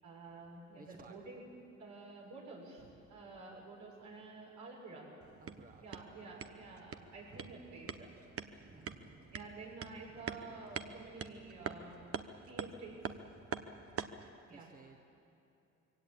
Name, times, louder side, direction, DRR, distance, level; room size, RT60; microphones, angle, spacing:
voice 1, 0.0-1.4 1.8-5.1 5.8-8.1 9.3-12.0 12.5-13.2 14.5-14.7, right 3 dB, 80° right, -3 dB, 6.9 m, -50 dB
voice 2, 0.7-1.1 5.4-6.1 8.5-9.3 10.1-10.3 14.5-15.0, right 3 dB, 30° right, 3 dB, 1.6 m, -58 dB
sound 1, 5.2-14.3, right 6 dB, 50° right, 1.0 m, -46 dB
23.0 x 17.0 x 9.0 m, 2.8 s
cardioid pair, 90°, 30 cm